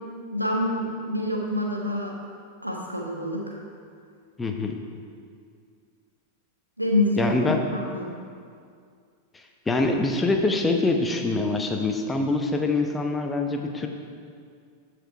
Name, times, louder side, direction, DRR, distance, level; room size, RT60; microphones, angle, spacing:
voice 1, 0.3-2.1 2.6-3.4 6.8-8.2, left 1 dB, 85° right, 0 dB, 1.3 m, -27 dB
voice 2, 4.4-4.8 7.2-7.6 9.7-13.9, left 3 dB, 10° left, 3 dB, 0.9 m, -24 dB
14.0 x 5.0 x 4.6 m, 2.2 s
figure-of-eight pair, 90°, 0 cm